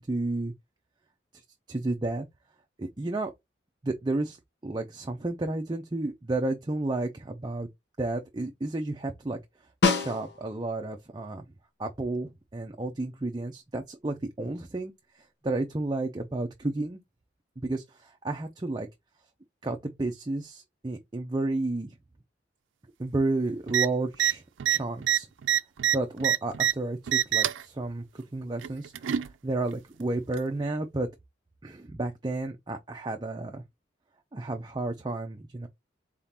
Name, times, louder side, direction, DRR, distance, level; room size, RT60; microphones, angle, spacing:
voice 1, 0.1-0.5 1.3-1.4 1.7-2.3 2.8-3.3 3.8-4.4 4.6-7.7 8.0-9.4 9.9-11.5 11.8-17.0 17.6-18.9 19.6-21.9 23.0-25.3 25.9-31.1 31.6-33.6 34.3-35.7, right 2 dB, 20° right, 0.5 m, -32 dB
Snare drum, 9.8-10.7 15.2-15.3, left 4 dB, 60° left, 0.9 m, -26 dB
sound 1, 23.7-23.9 24.1-24.3 24.6-26.7 27.1-27.6 28.6-29.3 30.3-30.4, right 10 dB, 85° right, 0.4 m, -25 dB
4.0 x 3.7 x 2.8 m
head